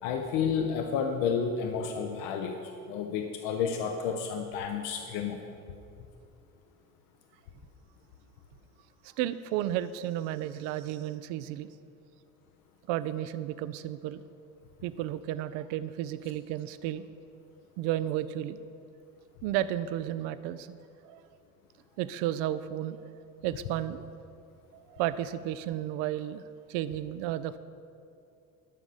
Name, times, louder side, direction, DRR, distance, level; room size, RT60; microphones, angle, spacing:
voice 1, 0.0-5.4, left 6 dB, 50° left, 5 dB, 0.8 m, -31 dB
voice 2, 9.0-11.7 12.9-14.2 14.8-17.0 17.8-18.6 19.4-20.7 21.0-21.2 22.0-23.0 23.4-24.0 24.7-26.4 26.7-27.6, right 12 dB, 45° right, 14 dB, 0.5 m, -33 dB
12.0 x 6.0 x 6.9 m, 2.6 s
figure-of-eight pair, 65°, 46 cm